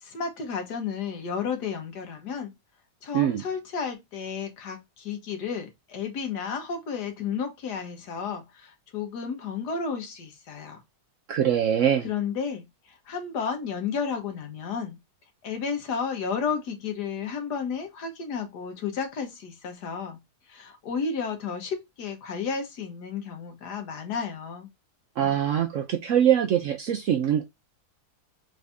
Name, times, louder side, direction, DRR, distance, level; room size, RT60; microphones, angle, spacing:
voice 1, 0.0-2.5 3.0-10.8 12.0-15.0 15.4-20.2 20.5-24.7, left 6 dB, 75° left, 1.6 m, -32 dB
voice 2, 11.3-12.1 25.2-27.4, right 9 dB, 70° right, 0.7 m, -23 dB
4.0 x 2.6 x 3.4 m
omnidirectional pair, 1.8 m